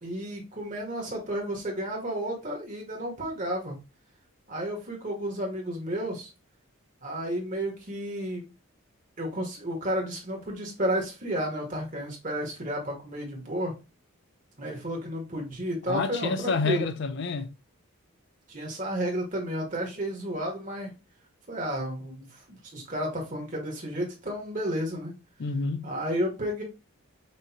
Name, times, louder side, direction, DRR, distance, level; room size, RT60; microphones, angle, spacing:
voice 1, 0.0-3.8 4.5-6.3 7.0-8.4 9.2-13.7 14.6-16.9 18.5-20.9 21.5-25.1 25.8-26.6, equal, 35° right, 1.6 m, -32 dB
voice 2, 15.9-17.5 25.4-25.9, left 4 dB, 50° left, 0.4 m, -28 dB
6.2 x 2.6 x 2.9 m
head